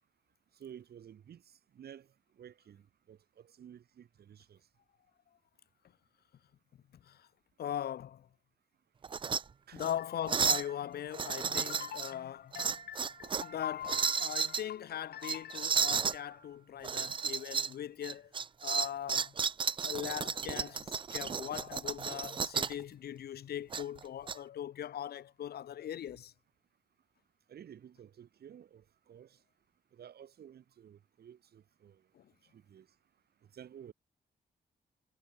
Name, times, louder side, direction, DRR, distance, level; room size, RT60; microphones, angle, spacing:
voice 1, 0.6-2.1 2.4-2.8 3.1-4.6 9.7-9.8 27.5-29.4 29.9-32.0 32.5-32.9 33.5-33.9, right 9 dB, 75° right, 4.7 m, -53 dB
voice 2, 7.6-8.3 9.7-18.3 18.6-19.3 19.8-26.3 32.1-32.3, left 10 dB, 75° left, 1.0 m, -40 dB
sound 1, 9.0-9.4 9.8-9.9 10.3-10.7 11.1-12.1 12.5-13.5 13.8-14.6 15.2-16.2 16.8-17.7 18.0-22.8 23.7-24.4, right 6 dB, 30° right, 0.4 m, -33 dB
cardioid pair, 105°, 16 cm